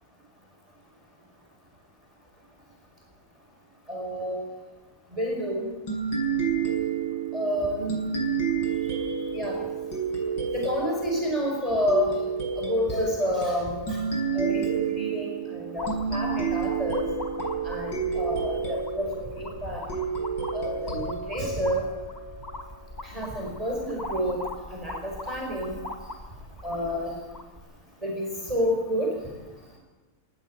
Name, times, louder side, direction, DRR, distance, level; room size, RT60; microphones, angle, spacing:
voice 1, 3.9-4.5 5.1-5.7 7.3-8.0 8.9-9.0 9.3-9.6 10.5-12.2 12.6-14.0 14.3-17.1 17.6-19.8 20.5-21.9 23.0-25.8 26.6-27.2 28.0-29.2, equal, 15° right, 0 dB, 5.5 m, -29 dB
sound 1, 5.9-23.0, right 6 dB, 55° left, 7.8 m, -30 dB
sound 2, 15.8-27.6, left 1 dB, 20° left, 2.7 m, -40 dB
24.0 x 19.0 x 9.0 m, 1.2 s
omnidirectional pair, 2.3 m